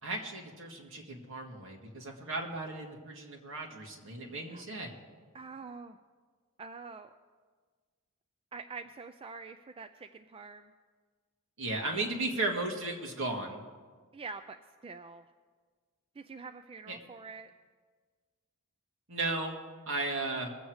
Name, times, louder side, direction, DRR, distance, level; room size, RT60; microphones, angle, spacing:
voice 1, 0.0-4.9 11.6-13.6 16.9-17.0 19.1-19.6 19.9-20.6, right 2 dB, 60° right, 0 dB, 2.1 m, -35 dB
voice 2, 5.3-6.0 6.6-7.1 8.5-10.7 14.1-14.6 14.8-15.2 16.2-17.5, right 4 dB, 25° right, 8 dB, 0.3 m, -45 dB
22.0 x 7.9 x 4.8 m, 1.5 s
head